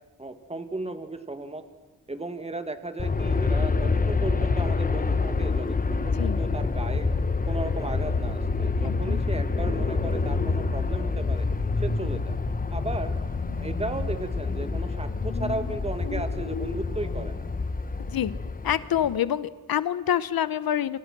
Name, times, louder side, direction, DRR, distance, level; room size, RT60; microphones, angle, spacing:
voice 1, 0.2-1.6 2.1-7.1 7.5-11.5 11.8-12.4 12.7-13.2 13.6-17.4, right 2 dB, 20° right, 8 dB, 2.2 m, -35 dB
Aircraft, 3.0-19.2, left 4 dB, 25° left, 1.0 m, -27 dB
sound 1, 6.9-17.3, left 2 dB, 60° left, 3.2 m, -34 dB
voice 2, 8.8-9.2 18.0-18.3 18.6-21.0, left 10 dB, 85° left, 16 dB, 1.0 m, -27 dB
29.0 x 26.0 x 6.2 m, 1.2 s
wide cardioid pair, 95°, 35 cm